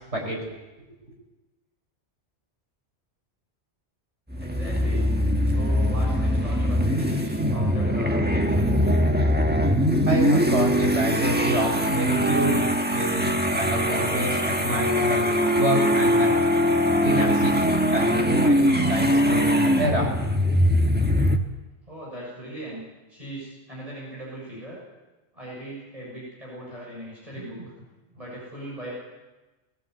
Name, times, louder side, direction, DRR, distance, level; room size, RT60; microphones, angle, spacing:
sound 1, 4.3-21.4, equal, 10° right, 1.4 m, -22 dB
voice 1, 4.4-5.1 5.4-9.0 21.9-22.8 23.1-24.8 25.3-27.9 28.1-28.9, right 1 dB, 30° right, -6 dB, 7.5 m, -39 dB
voice 2, 10.1-15.2 15.6-16.3 17.0-17.5 17.9-20.1, right 1 dB, 75° right, 0 dB, 6.1 m, -27 dB
21.0 x 16.0 x 8.3 m, 1.1 s
omnidirectional pair, 1.2 m